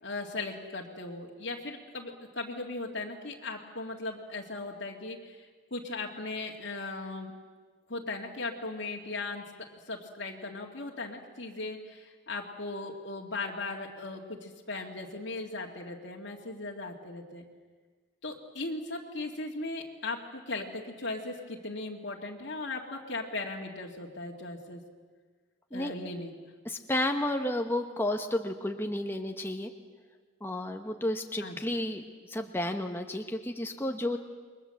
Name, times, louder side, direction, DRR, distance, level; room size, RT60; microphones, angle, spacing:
voice 1, 0.0-7.3 7.9-9.4 9.9-17.4 18.2-24.8 25.7-26.3 31.4-31.6, left 2 dB, 60° left, -1 dB, 2.2 m, -38 dB
voice 2, 26.6-29.7 30.4-34.2, left 1 dB, 10° left, 4 dB, 1.1 m, -32 dB
29.0 x 22.5 x 7.8 m, 1.5 s
head